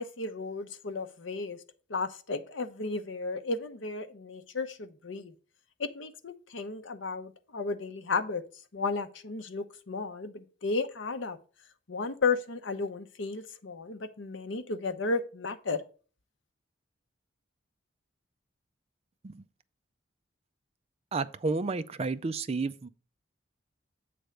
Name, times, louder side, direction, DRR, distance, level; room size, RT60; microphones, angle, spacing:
voice 1, 0.0-1.6 1.9-5.3 5.8-8.4 8.7-11.4 11.9-15.8, left 4 dB, 70° left, 0.7 m, -33 dB
voice 2, 21.1-22.9, right 3 dB, 30° right, 0.4 m, -31 dB
7.8 x 3.4 x 6.3 m
head